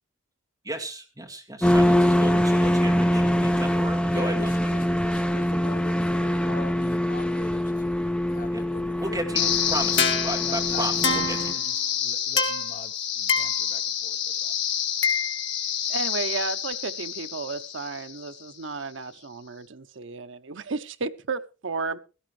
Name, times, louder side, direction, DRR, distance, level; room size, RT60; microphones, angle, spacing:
voice 1, 0.7-4.7 8.5-8.7 9.0-11.5, right 1 dB, 20° right, 2.2 m, -34 dB
sound 1, 1.6-11.5, equal, 5° left, 0.6 m, -24 dB
voice 2, 4.1-9.2 9.7-9.8 10.4-14.5, left 3 dB, 45° left, 1.0 m, -42 dB
sound 2, 9.4-18.4, left 7 dB, 65° left, 1.8 m, -27 dB
voice 3, 15.9-22.0, right 4 dB, 80° right, 0.8 m, -33 dB
17.0 x 13.0 x 3.3 m
head